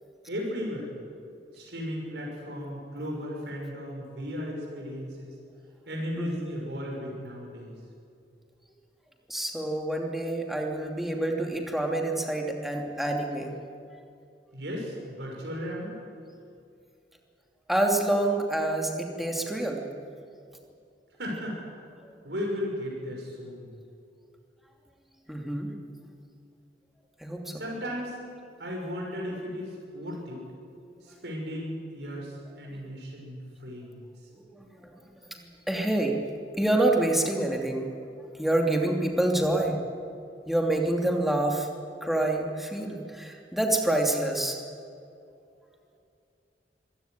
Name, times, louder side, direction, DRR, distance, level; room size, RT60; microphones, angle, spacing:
voice 1, 0.3-0.9 1.5-5.3 5.9-7.8 14.5-15.9 21.2-21.6 22.2-23.7 27.5-28.2 28.6-30.4 31.0-34.3, equal, 70° right, -1 dB, 6.2 m, -36 dB
voice 2, 9.3-13.5 17.7-19.8 22.0-22.1 25.3-25.7 27.2-27.5 32.7-32.8 34.5-34.9 35.7-36.2 36.6-37.9 38.3-39.8 40.5-41.7 42.0-44.6, right 1 dB, ahead, 0 dB, 2.9 m, -27 dB
25.0 x 16.5 x 9.5 m, 2.5 s
head